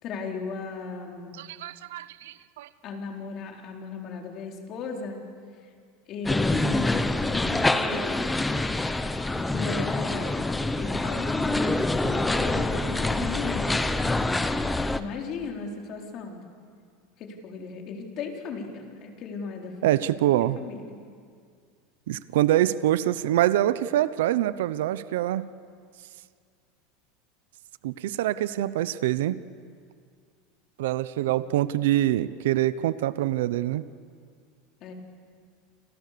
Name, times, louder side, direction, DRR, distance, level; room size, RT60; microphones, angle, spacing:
voice 1, 0.0-1.4 2.8-5.2 6.1-8.3 9.4-16.5 17.2-20.0 20.6-20.8 34.8-34.9, left 4 dB, 40° left, 1 dB, 4.3 m, -36 dB
voice 2, 1.3-2.7 19.8-20.6 22.1-25.5 27.8-29.4 30.8-33.8, right 13 dB, 85° right, 15 dB, 0.8 m, -25 dB
sound 1, 6.2-15.0, left 2 dB, 5° left, 1.0 m, -26 dB
29.5 x 26.5 x 6.9 m, 2.1 s
supercardioid pair, 145°, 0 cm